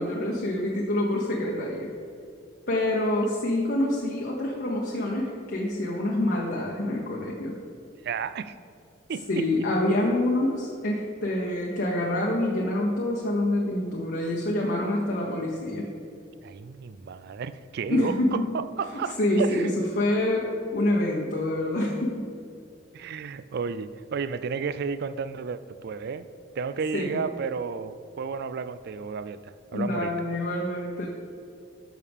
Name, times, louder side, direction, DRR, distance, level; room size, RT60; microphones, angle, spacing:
voice 1, 0.0-1.9 2.7-7.6 9.3-15.9 17.9-18.4 19.2-19.7 20.0-22.3 26.9-27.2 29.7-31.1, left 1 dB, 55° left, -3 dB, 1.0 m, -26 dB
voice 2, 8.0-8.5 9.1-9.4 16.4-19.8 22.9-26.3 26.6-30.1, right 5 dB, 55° right, 14 dB, 0.4 m, -32 dB
12.0 x 6.5 x 3.6 m, 2.4 s
head